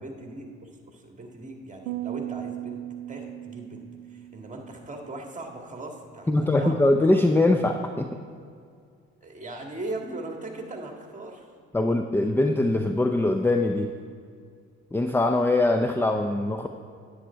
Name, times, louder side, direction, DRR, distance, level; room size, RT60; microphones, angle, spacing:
voice 1, 0.0-2.8 3.1-7.1 9.2-11.5, right 2 dB, 20° right, 2 dB, 1.9 m, -39 dB
sound 1, 1.9-5.3, right 14 dB, 85° right, 0.5 m, -37 dB
voice 2, 6.3-8.1 11.7-13.9 14.9-16.7, left 2 dB, 5° left, 6 dB, 0.5 m, -22 dB
9.9 x 8.5 x 4.5 m, 2.2 s
hypercardioid pair, 60°, 33 cm